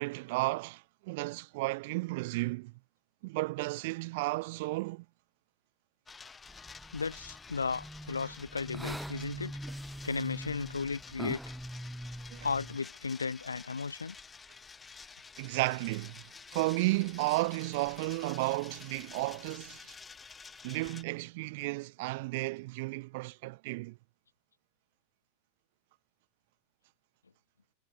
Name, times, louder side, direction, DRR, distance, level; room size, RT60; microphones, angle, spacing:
voice 1, 0.0-2.7 3.2-5.0 12.3-12.5 15.4-19.9 20.6-24.0, right 23 dB, 50° right, 3.2 m, -33 dB
sound 1, 6.1-21.0, left 5 dB, 15° left, 1.9 m, -51 dB
sound 2, 6.5-12.8, equal, ahead, 2.9 m, -43 dB
voice 2, 6.9-9.5 10.0-11.4 12.4-14.1, left 5 dB, 75° left, 0.9 m, -35 dB
figure-of-eight pair, 90°, 0 cm